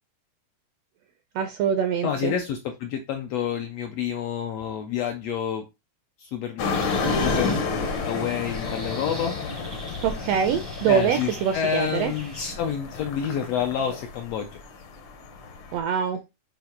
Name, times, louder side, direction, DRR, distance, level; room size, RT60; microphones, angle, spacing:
voice 1, 1.3-2.3 10.0-12.1 15.7-16.2, right 8 dB, 80° right, 8 dB, 1.5 m, -24 dB
voice 2, 2.0-5.6 6.2-6.7 7.1-9.3 10.9-14.5, left 8 dB, 80° left, 5 dB, 1.5 m, -29 dB
sound 1, 6.6-15.8, left 4 dB, 65° left, 1.4 m, -30 dB
sound 2, 6.7-12.5, right 1 dB, 30° right, 0.4 m, -43 dB
8.0 x 2.8 x 4.4 m, 0.24 s
omnidirectional pair, 3.6 m